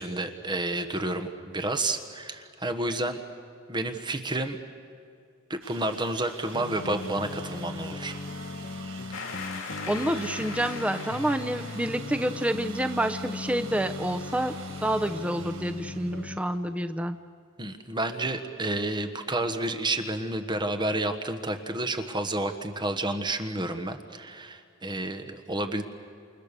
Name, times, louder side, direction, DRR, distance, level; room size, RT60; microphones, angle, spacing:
voice 1, 0.0-3.2 3.7-4.6 5.5-8.2 17.6-25.8, right 2 dB, 20° right, 6 dB, 1.3 m, -30 dB
sound 1, 5.6-16.7, right 5 dB, 80° right, 5.8 m, -46 dB
sound 2, 6.5-16.4, left 3 dB, 50° left, 0.8 m, -38 dB
sound 3, 9.1-12.0, left 5 dB, 75° left, 2.5 m, -39 dB
voice 2, 9.9-17.2, right 1 dB, 5° right, 7 dB, 0.7 m, -28 dB
29.5 x 28.5 x 6.8 m, 2.3 s
head